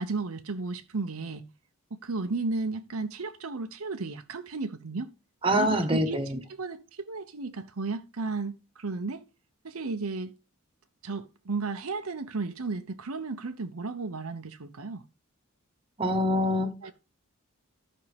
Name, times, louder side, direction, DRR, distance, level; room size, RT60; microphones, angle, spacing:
voice 1, 0.0-1.4 2.0-5.1 5.6-6.2 6.6-9.2 9.6-10.3 11.0-15.0 16.8-16.9, right 3 dB, 85° right, 0.8 m, -34 dB
voice 2, 5.4-6.4 16.0-16.9, equal, 25° right, 1.3 m, -25 dB
13.5 x 5.5 x 3.4 m
head